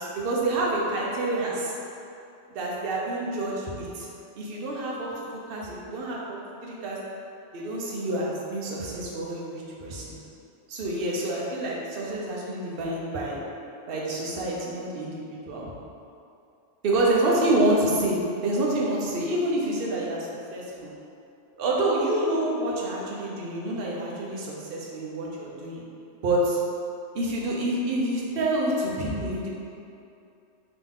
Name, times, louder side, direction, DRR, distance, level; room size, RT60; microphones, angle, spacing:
voice 1, 0.0-1.8 2.5-4.1 4.4-7.0 7.5-10.1 10.7-13.4 13.9-15.7 16.8-20.9 21.6-25.8 26.2-26.6 27.1-29.5, right 1 dB, 55° right, -4 dB, 0.8 m, -27 dB
3.9 x 2.9 x 3.6 m, 2.6 s
omnidirectional pair, 1.3 m